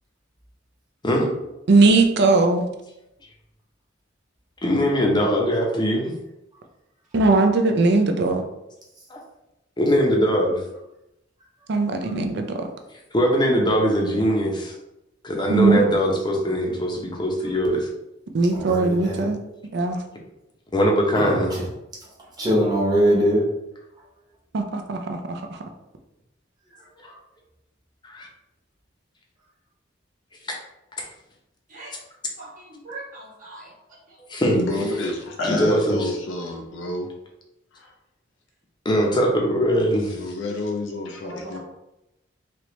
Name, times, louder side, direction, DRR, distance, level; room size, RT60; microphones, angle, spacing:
voice 1, 1.7-2.6 7.1-8.5 11.7-12.7 15.5-15.8 18.3-19.4 19.7-20.0 24.5-25.2, right 3 dB, 60° right, 5 dB, 0.4 m, -19 dB
voice 2, 4.6-6.1 9.1-9.2 9.8-10.6 13.1-14.8 15.2-17.9 20.7-21.5 28.0-28.3 34.3-34.6 35.4-36.0 38.8-40.2, equal, 25° left, 0 dB, 0.7 m, -21 dB
voice 3, 18.5-19.3 21.1-21.6 22.0-22.1 22.4-23.4 27.0-27.2, equal, 20° right, -5 dB, 1.1 m, -22 dB
voice 4, 32.4-33.7 34.1-34.2 41.2-41.6, right 2 dB, 45° right, -5 dB, 1.1 m, -40 dB
voice 5, 34.5-37.1 37.7-37.9 40.1-41.6, left 2 dB, 70° left, 2 dB, 0.5 m, -29 dB
3.2 x 2.9 x 3.0 m, 0.88 s
head